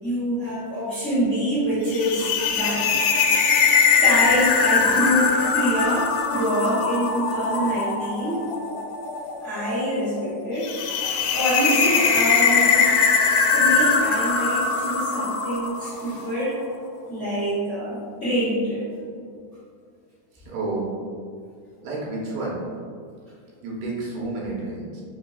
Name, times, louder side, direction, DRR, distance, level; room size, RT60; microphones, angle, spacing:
voice 1, 0.0-2.9 4.0-8.4 9.4-10.7 11.3-13.0 13.5-16.6 17.1-18.8, equal, 60° left, -12 dB, 0.7 m, -25 dB
sound 1, 1.9-16.2, left 5 dB, 90° left, 2.3 m, -21 dB
voice 2, 20.3-20.9 21.8-22.6 23.6-25.0, right 2 dB, 85° right, -5 dB, 2.8 m, -30 dB
6.3 x 2.9 x 2.3 m, 2.2 s
omnidirectional pair, 4.0 m